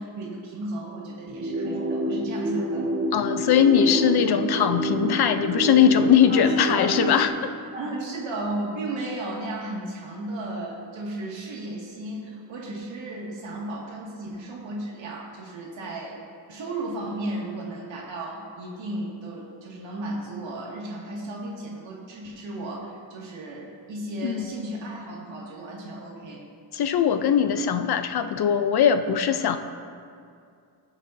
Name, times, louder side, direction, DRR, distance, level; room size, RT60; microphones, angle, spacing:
voice 1, 0.0-2.9 6.3-7.2 7.7-16.2 16.5-26.4, right 1 dB, 85° right, -3 dB, 2.2 m, -34 dB
sound 1, 1.3-7.3, right 1 dB, 30° right, 1.4 m, -28 dB
voice 2, 3.1-7.3 24.2-24.4 26.7-29.6, left 8 dB, 60° left, 9 dB, 0.7 m, -20 dB
21.0 x 7.2 x 2.7 m, 2.3 s
wide cardioid pair, 155°, 44 cm